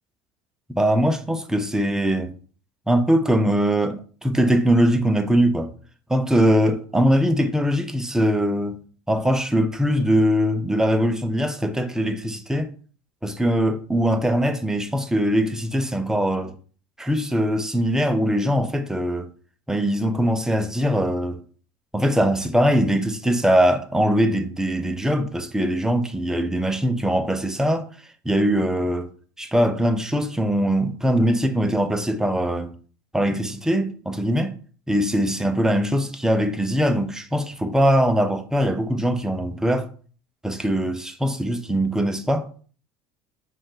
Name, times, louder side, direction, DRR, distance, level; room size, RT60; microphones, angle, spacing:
voice 1, 0.8-2.3 2.9-5.7 6.1-12.7 13.2-16.6 17.0-19.3 19.7-21.4 21.9-27.9 28.2-29.1 29.4-32.7 33.1-34.6 34.9-39.9 40.4-42.4, equal, 5° right, 0.6 m, -21 dB
5.0 x 2.4 x 3.8 m
supercardioid pair, 105°, 11 cm